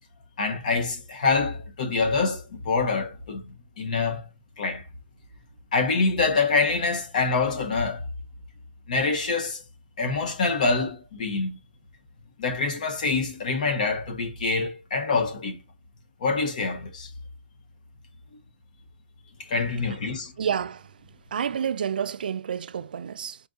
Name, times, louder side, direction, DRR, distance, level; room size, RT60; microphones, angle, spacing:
voice 1, 0.4-3.4 3.8-4.3 4.6-4.8 5.7-8.0 8.9-9.6 10.0-11.6 12.4-15.6 16.2-17.1 19.5-20.3, left 4 dB, 40° left, 1.2 m, -25 dB
voice 2, 20.4-20.8 21.3-23.4, right 7 dB, 50° right, 0.4 m, -29 dB
4.6 x 2.6 x 3.6 m
hypercardioid pair, 170°, 6 cm